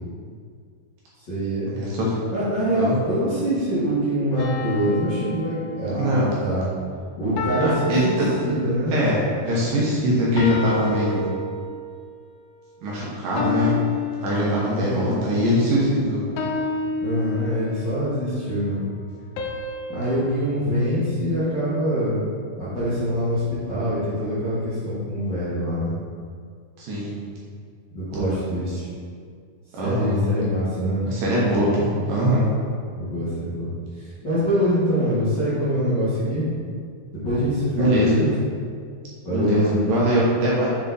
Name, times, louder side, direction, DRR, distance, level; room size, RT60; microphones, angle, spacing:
voice 1, 1.2-1.9 2.3-6.7 7.1-8.2 8.4-9.0 14.7-15.1 17.0-18.8 19.9-22.2 22.6-26.0 27.9-28.9 29.8-31.1 31.4-31.6 33.0-36.5 37.1-38.3 39.2-39.8, equal, 65° left, -12 dB, 1.0 m, -24 dB
voice 2, 1.7-2.1 2.8-3.0 6.0-6.2 7.6-8.3 8.9-11.3 12.8-13.8 14.2-16.2 26.8-27.1 28.1-28.3 29.7-30.2 31.1-32.5 37.8-38.2 39.3-40.7, equal, 65° right, -6 dB, 2.5 m, -22 dB
sound 1, 4.4-6.3 7.4-9.0 10.4-11.9 13.4-15.0 16.4-18.0 19.4-21.7, left 3 dB, 90° left, 2.1 m, -30 dB
7.1 x 4.0 x 4.0 m, 2.1 s
omnidirectional pair, 4.7 m